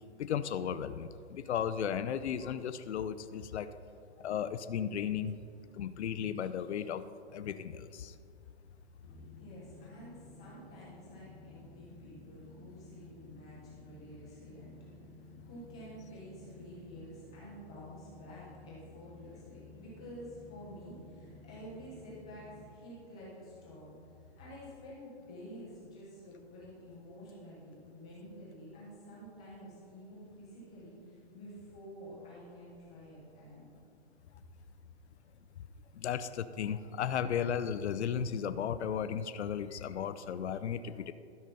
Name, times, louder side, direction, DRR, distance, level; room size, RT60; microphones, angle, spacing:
voice 1, 0.2-3.7 4.2-5.3 5.8-7.0 7.3-8.1 36.0-41.1, left 8 dB, 80° left, 12 dB, 0.6 m, -35 dB
sound 1, 9.0-22.7, left 3 dB, 55° left, 1.2 m, -54 dB
voice 2, 9.4-14.7 15.4-23.9 24.4-33.7, equal, 5° left, -7 dB, 0.4 m, -50 dB
12.5 x 5.7 x 5.3 m, 2.4 s
hypercardioid pair, 170°, 33 cm